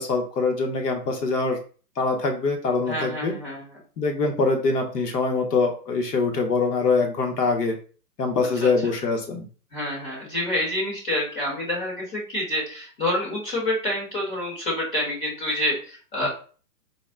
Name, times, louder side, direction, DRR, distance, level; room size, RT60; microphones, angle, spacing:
voice 1, 0.0-1.6 2.0-3.3 4.0-7.8 8.2-9.5 16.2-16.3, left 4 dB, 70° left, 4 dB, 1.2 m, -24 dB
voice 2, 2.9-3.8 8.6-8.7 9.7-16.3, left 1 dB, 30° left, -4 dB, 1.3 m, -27 dB
4.1 x 2.1 x 3.6 m, 0.39 s
hypercardioid pair, 160°, 49 cm